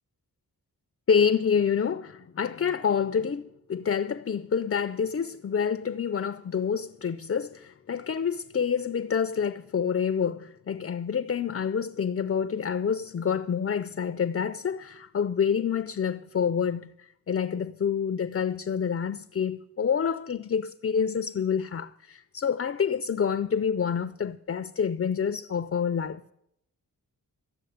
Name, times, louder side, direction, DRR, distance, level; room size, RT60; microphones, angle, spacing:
voice 1, 1.1-26.3, left 7 dB, 35° left, 0.5 m, -27 dB
14.0 x 7.2 x 9.3 m
wide cardioid pair, 90°, 38 cm